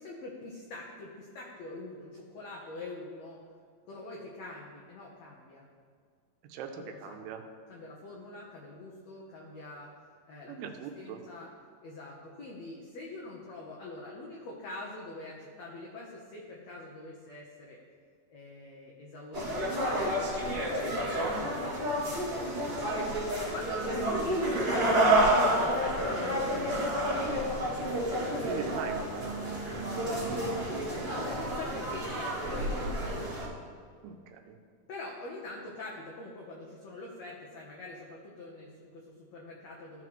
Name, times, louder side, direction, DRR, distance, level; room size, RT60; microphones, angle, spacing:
voice 1, 0.0-3.4 3.9-5.6 6.7-7.2 7.7-9.9 10.3-10.5 11.0-11.5 11.8-17.8 18.3-27.3 31.0-33.3 34.9-40.0, left 2 dB, 85° left, -2 dB, 1.5 m, -44 dB
voice 2, 6.5-7.4 10.5-11.2 28.4-29.5 29.9-30.0 34.0-34.6, right 7 dB, 90° right, 5 dB, 2.7 m, -41 dB
sound 1, 19.3-33.5, right 1 dB, 25° right, 1.9 m, -29 dB
15.0 x 6.1 x 3.1 m, 2.1 s
omnidirectional pair, 4.5 m